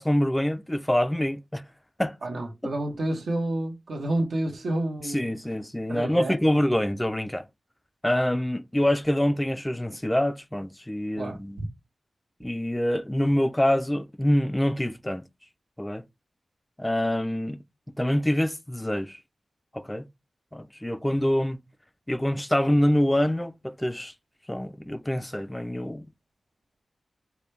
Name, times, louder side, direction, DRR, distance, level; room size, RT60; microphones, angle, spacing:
voice 1, 0.0-1.6 2.0-2.1 5.1-7.5 8.0-11.6 12.4-15.2 15.8-16.0 16.8-17.6 18.0-19.2 19.7-20.1 20.5-21.6 22.1-24.1 24.5-26.1, left 1 dB, 10° left, 0.4 m, -25 dB
voice 2, 2.2-5.3 5.9-6.6 11.2-11.4, right 1 dB, 80° right, 1.2 m, -29 dB
4.8 x 2.3 x 3.3 m
cardioid pair, 60°, 0 cm